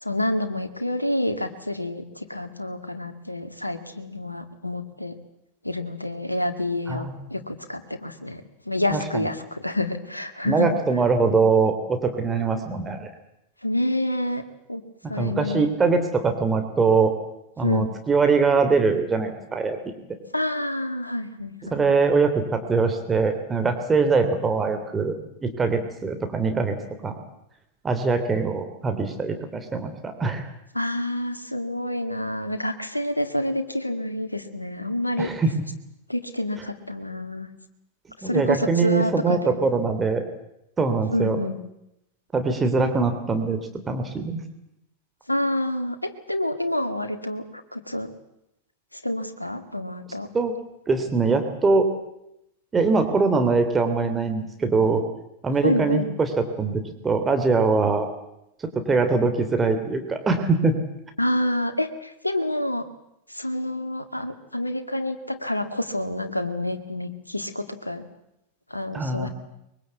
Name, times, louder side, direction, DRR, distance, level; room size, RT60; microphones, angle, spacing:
voice 1, 0.0-5.1 5.6-10.7 13.6-14.4 14.7-14.8 15.1-15.7 17.6-17.9 20.3-21.8 30.7-35.3 36.1-37.5 38.2-39.6 41.1-41.6 45.3-48.1 49.0-50.3 55.6-56.1 61.2-62.8 63.3-68.0 68.7-69.3, left 1 dB, 85° left, 8 dB, 1.9 m, -28 dB
voice 2, 6.9-7.3 8.9-9.3 10.4-13.1 15.0-17.1 17.6-19.8 21.7-25.1 25.4-26.8 27.0-27.1 27.8-30.5 35.2-35.5 38.2-40.2 40.8-41.4 42.3-43.6 43.9-44.4 50.3-50.5 50.9-51.9 52.7-55.0 55.4-58.1 58.7-60.7 68.9-69.3, right 4 dB, 15° right, 6 dB, 3.2 m, -22 dB
23.5 x 22.5 x 8.4 m, 0.84 s
figure-of-eight pair, 90°, 0 cm